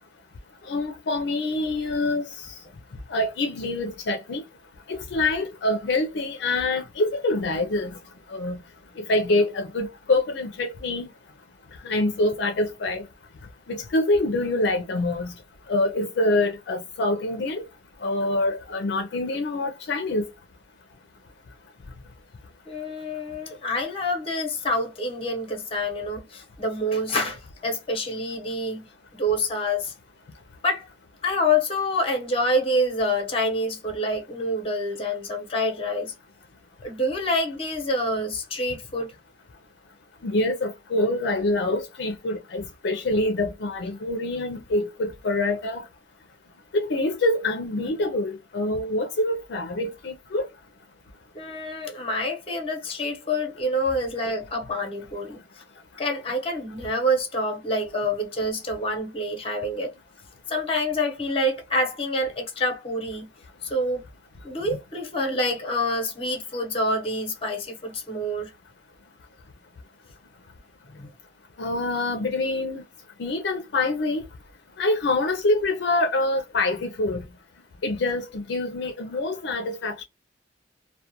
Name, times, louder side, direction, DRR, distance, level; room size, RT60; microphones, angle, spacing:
voice 1, 0.7-2.5 3.1-4.4 4.9-8.0 8.3-8.6 9.0-11.1 11.8-13.0 13.7-15.3 15.7-17.6 18.0-20.3 40.2-45.8 46.7-50.5 71.6-72.8 73.2-74.2 74.8-77.2 77.8-80.0, left 2 dB, 65° left, 0.4 m, -25 dB
voice 2, 22.7-28.8 29.2-29.9 30.6-30.9 31.2-36.1 36.8-39.1 51.3-55.4 56.0-59.9 60.5-63.3 63.6-64.0 64.4-68.5 70.9-71.1, left 1 dB, 30° left, 0.8 m, -27 dB
2.3 x 2.1 x 2.8 m
head